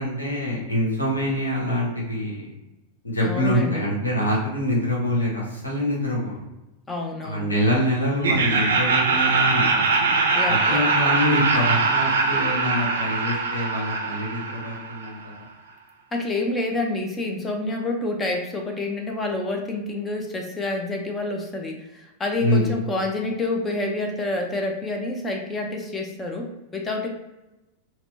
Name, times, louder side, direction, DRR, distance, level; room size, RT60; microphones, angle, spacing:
voice 1, 0.0-2.5 3.0-6.3 7.2-9.9 10.5-15.3 22.4-22.7, left 1 dB, 80° left, -3 dB, 1.0 m, -25 dB
voice 2, 3.2-3.8 6.9-7.5 10.4-11.1 16.1-27.1, left 2 dB, 15° left, 2 dB, 0.4 m, -28 dB
Laughter, 8.2-15.2, right 4 dB, 65° right, 0.5 m, -22 dB
4.1 x 2.1 x 2.6 m, 1.0 s
figure-of-eight pair, 90°, 0 cm